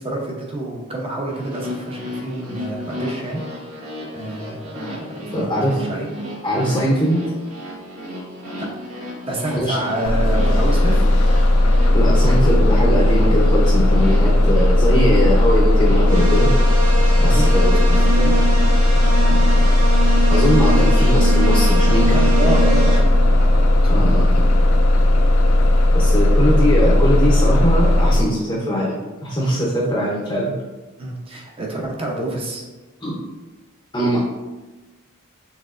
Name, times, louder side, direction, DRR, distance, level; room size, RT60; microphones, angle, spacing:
voice 1, 0.0-3.4 4.1-4.9 5.3-6.1 9.3-11.1 17.2-18.5 21.9-24.3 31.0-32.6, right 1 dB, 25° right, -1 dB, 0.7 m, -28 dB
sound 1, 1.3-16.0, left 1 dB, 75° right, 1.3 m, -34 dB
voice 2, 5.3-5.8 6.4-7.2 9.6-9.8 11.9-16.5 17.2-17.7 19.3-19.4 20.3-22.6 23.9-24.4 25.9-28.9 29.2-30.5 33.0-33.1 33.9-34.3, equal, 20° left, -4 dB, 0.7 m, -21 dB
Bus, 10.0-28.2, left 1 dB, 70° left, 0.5 m, -15 dB
sound 2, 16.1-23.0, right 2 dB, 90° right, 1.0 m, -25 dB
5.8 x 3.3 x 2.5 m, 1.2 s
head